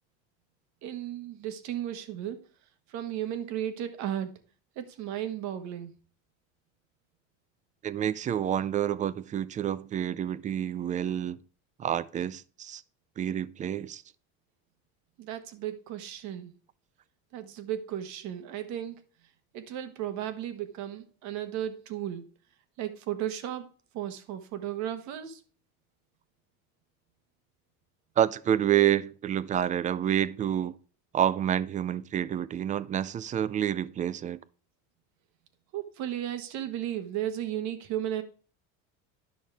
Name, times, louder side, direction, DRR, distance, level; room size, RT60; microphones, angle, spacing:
voice 1, 0.8-2.4 2.9-4.3 4.7-5.9 15.2-16.5 17.3-19.0 19.5-22.3 22.8-23.7 23.9-25.4 35.7-38.2, right 11 dB, 60° right, 1.3 m, -34 dB
voice 2, 7.8-11.4 11.8-12.8 13.2-14.0 28.2-30.7 31.1-34.4, right 10 dB, 25° right, 0.3 m, -28 dB
10.5 x 6.2 x 3.4 m
supercardioid pair, 120°, 32 cm